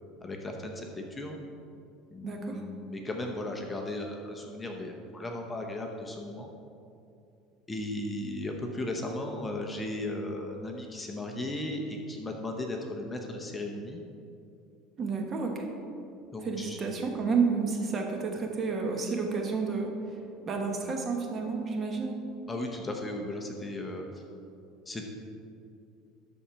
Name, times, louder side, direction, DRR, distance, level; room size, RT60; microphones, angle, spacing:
voice 1, 0.2-1.4 2.1-6.5 7.7-14.0 16.3-16.8 22.5-24.2 24.9-25.0, left 1 dB, 15° left, 2 dB, 0.8 m, -36 dB
voice 2, 2.2-2.6 15.0-15.7 16.4-19.9 20.4-22.2, right 4 dB, 30° right, 2 dB, 1.3 m, -30 dB
12.5 x 4.3 x 5.8 m, 2.6 s
supercardioid pair, 130°, 0 cm